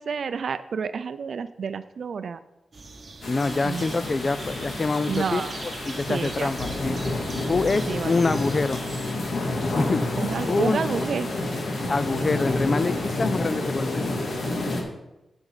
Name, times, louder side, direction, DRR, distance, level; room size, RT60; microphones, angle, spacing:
voice 1, 0.0-2.4 3.6-4.0 5.1-5.5 6.1-6.5 7.9-8.1 10.2-11.3, right 6 dB, 60° right, 13 dB, 0.5 m, -29 dB
sound 1, 2.7-9.1, right 3 dB, 35° right, 1.1 m, -41 dB
sound 2, 3.2-14.8, left 2 dB, 60° left, 1.9 m, -29 dB
voice 2, 3.3-7.0 7.5-8.8 9.7-10.0 10.5-10.8 11.9-14.0, left 3 dB, 35° left, 14 dB, 0.4 m, -25 dB
7.9 x 5.3 x 7.4 m, 0.96 s
wide cardioid pair, 145°, 0 cm